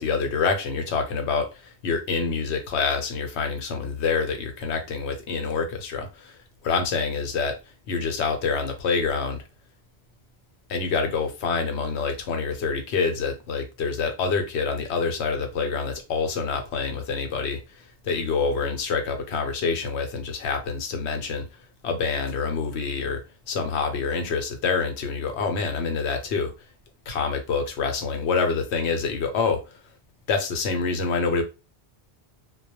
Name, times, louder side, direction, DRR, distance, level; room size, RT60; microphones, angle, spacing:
voice 1, 0.0-7.6 7.9-9.4 10.7-21.5 21.8-26.5 27.1-29.8 30.3-31.4, left 5 dB, 80° left, 0.9 m, -26 dB
2.2 x 2.1 x 2.8 m
omnidirectional pair, 1.1 m